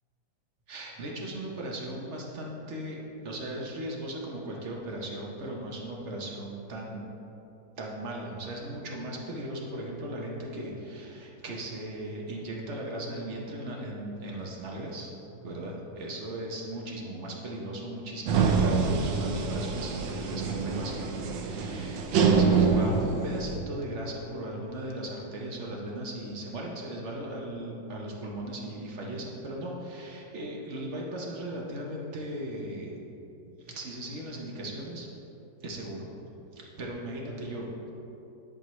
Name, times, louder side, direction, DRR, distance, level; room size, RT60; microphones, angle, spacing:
voice 1, 0.7-3.0 3.2-7.1 7.8-32.9 33.6-35.1 35.6-36.1 36.5-37.9, right 1 dB, 50° right, -2 dB, 0.9 m, -37 dB
sound 1, 18.3-23.6, right 5 dB, 80° right, 1.3 m, -26 dB
10.5 x 4.6 x 3.1 m, 2.9 s
omnidirectional pair, 2.0 m